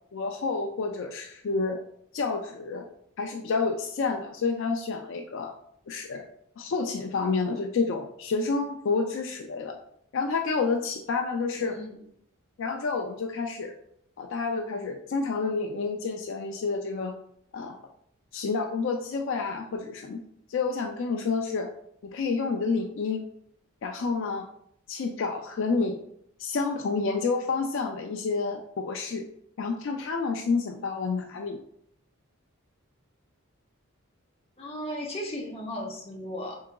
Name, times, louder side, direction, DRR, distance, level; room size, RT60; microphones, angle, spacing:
voice 1, 0.1-1.8 2.1-2.9 3.2-5.5 5.9-6.3 6.6-9.8 10.1-11.8 12.6-13.7 14.2-17.1 17.5-17.8 18.3-20.2 20.5-21.7 22.0-23.2 23.8-24.5 24.9-26.0 26.4-29.2 29.6-31.6, left 4 dB, 60° left, 3 dB, 0.4 m, -29 dB
voice 2, 34.6-36.6, equal, 25° left, -1 dB, 0.8 m, -35 dB
4.6 x 3.7 x 2.2 m, 0.70 s
head